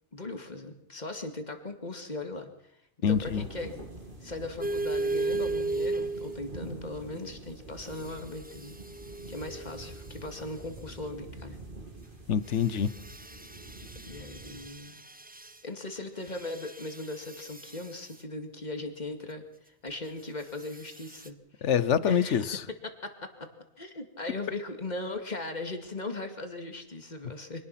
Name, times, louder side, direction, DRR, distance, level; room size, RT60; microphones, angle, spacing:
voice 1, 0.1-2.5 3.1-3.7 4.2-8.8 9.3-11.6 13.0-13.1 14.1-15.0 15.6-21.7 22.0-22.4 22.8-23.5 23.8-27.6, left 2 dB, 40° left, 6 dB, 2.4 m, -39 dB
voice 2, 3.0-3.4 12.3-12.9 21.6-22.6, left 8 dB, 85° left, 16 dB, 1.3 m, -25 dB
sound 1, 3.1-14.7, right 2 dB, 50° right, 3.3 m, -45 dB
sound 2, 4.6-6.7 7.9-10.3 12.5-15.6 16.2-18.2 20.6-21.3, right 2 dB, 10° right, 0.7 m, -36 dB
24.5 x 18.5 x 5.9 m, 0.79 s
omnidirectional pair, 1.2 m